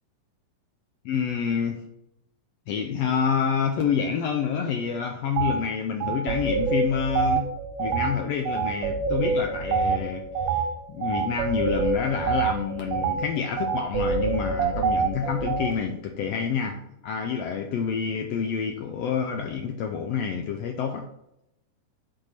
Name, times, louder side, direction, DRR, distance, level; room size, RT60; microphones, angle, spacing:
voice 1, 1.0-1.8 2.7-7.5 7.8-10.6 10.9-16.8 17.0-21.0, left 7 dB, 75° left, 4 dB, 1.5 m, -28 dB
sound 1, 5.4-5.6 6.0-15.7, right 5 dB, 85° right, 2.2 m, -26 dB
7.8 x 4.5 x 5.7 m, 0.81 s
omnidirectional pair, 3.6 m